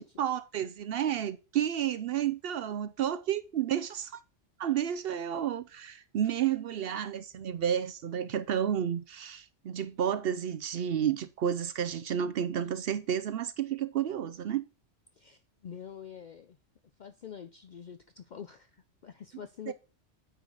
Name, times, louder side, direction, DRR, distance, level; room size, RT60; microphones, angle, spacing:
voice 1, 0.0-4.2 4.6-14.6 19.7-19.8, right 9 dB, 65° right, 0.7 m, -31 dB
voice 2, 15.1-16.6 17.0-19.7, left 8 dB, 65° left, 0.4 m, -46 dB
9.0 x 4.8 x 3.9 m
omnidirectional pair, 1.3 m